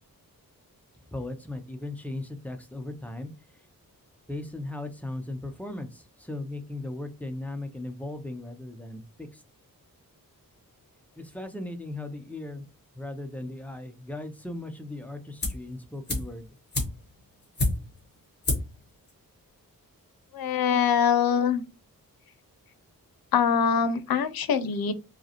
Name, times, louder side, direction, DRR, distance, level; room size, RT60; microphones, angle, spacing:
voice 1, 1.1-3.3 4.3-9.4 11.2-12.6 13.0-16.5, left 2 dB, 5° left, 0.4 m, -37 dB
sound 1, 15.4-15.7 16.1-18.1 18.4-18.8 19.1-19.2, left 2 dB, 30° left, 1.6 m, -29 dB
voice 2, 20.3-21.6 23.3-24.9, left 7 dB, 80° left, 0.6 m, -23 dB
4.8 x 2.0 x 2.9 m
wide cardioid pair, 165°, 35 cm